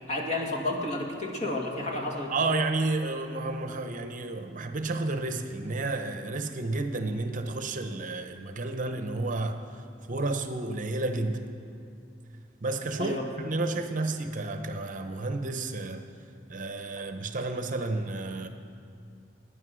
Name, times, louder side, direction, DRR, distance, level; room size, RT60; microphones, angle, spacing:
voice 1, 0.1-2.3 13.0-13.2, left 2 dB, 40° left, 1 dB, 2.0 m, -31 dB
voice 2, 2.3-9.7 10.1-11.5 12.6-16.0 16.5-18.5, right 2 dB, 45° right, 7 dB, 0.9 m, -31 dB
19.0 x 9.9 x 6.3 m, 2.4 s
head